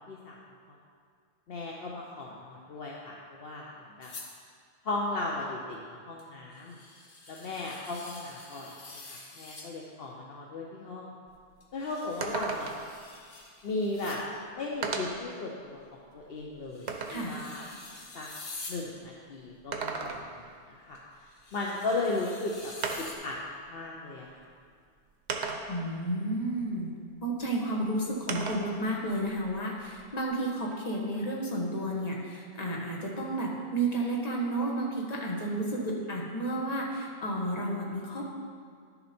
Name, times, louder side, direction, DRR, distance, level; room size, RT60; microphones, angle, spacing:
voice 1, 0.1-0.4 0.7-0.8 1.5-3.7 4.0-4.1 4.8-6.8 7.3-11.1 11.7-12.7 13.6-14.2 14.5-15.8 16.1-17.6 18.1-18.3 18.7-23.4 23.7-24.5, left 2 dB, 65° left, -2 dB, 1.0 m, -36 dB
sound 1, 4.0-4.3 6.2-6.3 6.5-9.7 11.6-14.2 15.1-15.2 16.7-18.8 20.9-21.0 21.3-23.1, left 3 dB, 90° left, 1.5 m, -47 dB
sound 2, 11.3-11.4 11.7-11.8 12.2-13.0 14.0-14.1 14.8-15.3 15.9-17.3 19.5-20.5 22.0-22.1 22.8-23.3 24.3-24.4 25.3-25.9 28.3-28.8 29.1-30.2, right 4 dB, 80° right, 1.1 m, -35 dB
voice 2, 25.7-38.3, right 1 dB, 40° left, -3 dB, 1.4 m, -32 dB
11.0 x 6.9 x 4.3 m, 2.1 s
omnidirectional pair, 1.1 m